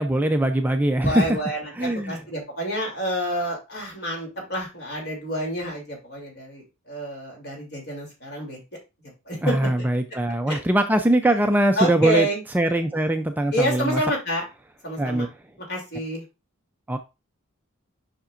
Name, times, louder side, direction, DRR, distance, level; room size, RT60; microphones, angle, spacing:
voice 1, 0.0-1.4 1.8-2.2 9.4-12.3 12.5-14.0 15.0-15.3 16.9-17.0, right 1 dB, 10° right, 6 dB, 0.4 m, -22 dB
voice 2, 1.0-8.6 9.3-9.8 10.5-10.6 11.2-11.3 11.8-12.4 13.5-14.4 14.8-15.3 15.7-16.2, right 1 dB, 50° left, 0 dB, 3.0 m, -28 dB
7.1 x 5.8 x 2.5 m, 0.26 s
head